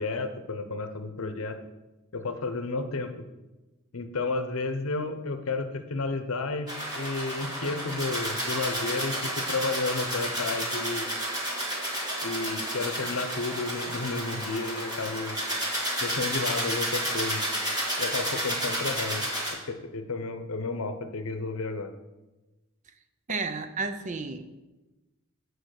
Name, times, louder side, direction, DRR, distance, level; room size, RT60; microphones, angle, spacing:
voice 1, 0.0-1.6 2.1-3.1 3.9-6.7 6.9-11.1 12.2-15.4 16.0-17.5 18.0-19.2 19.5-21.9, left 3 dB, 70° left, 8 dB, 0.8 m, -32 dB
sound 1, 6.7-19.5, right 1 dB, 20° right, 1.9 m, -31 dB
voice 2, 23.3-24.4, right 4 dB, 35° right, 9 dB, 0.5 m, -32 dB
8.9 x 4.6 x 6.5 m, 1.1 s
head